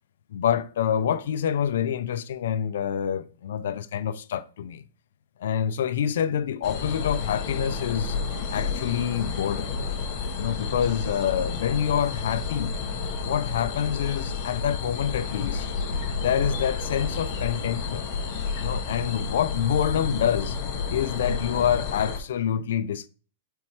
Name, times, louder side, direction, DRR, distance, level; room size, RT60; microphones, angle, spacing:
voice 1, 0.3-4.8 5.4-8.2 8.5-9.7 10.4-12.8 13.2-15.7 16.2-18.1 18.6-20.6 20.9-23.1, left 9 dB, 60° left, 0.5 m, -27 dB
sound 1, 6.6-22.2, left 5 dB, 25° left, 1.1 m, -30 dB
4.6 x 4.3 x 5.6 m
supercardioid pair, 180°, 0 cm